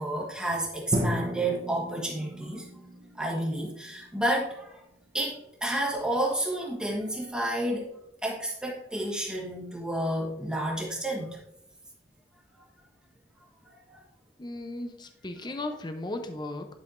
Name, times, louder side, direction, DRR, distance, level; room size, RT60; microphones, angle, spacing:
voice 1, 0.0-2.7 3.1-4.8 5.1-7.9 8.2-11.4 13.7-14.0, right 1 dB, 5° right, -2 dB, 1.4 m, -30 dB
Drum, 0.9-4.7, equal, 35° right, 0.8 m, -34 dB
voice 2, 14.4-16.7, left 2 dB, 25° left, 6 dB, 0.6 m, -36 dB
10.5 x 5.6 x 2.5 m, 0.79 s
head